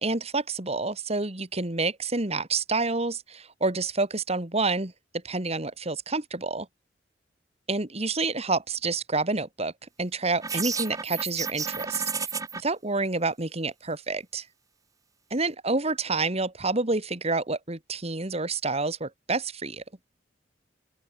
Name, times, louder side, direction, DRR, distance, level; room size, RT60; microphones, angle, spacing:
voice 1, 0.0-4.9 5.2-6.7 7.7-9.7 10.0-12.0 12.6-14.4 15.3-19.8, right 3 dB, 35° right, 2.4 m, -28 dB
sound 1, 10.4-12.6, right 5 dB, 20° right, 0.9 m, -31 dB
open air
head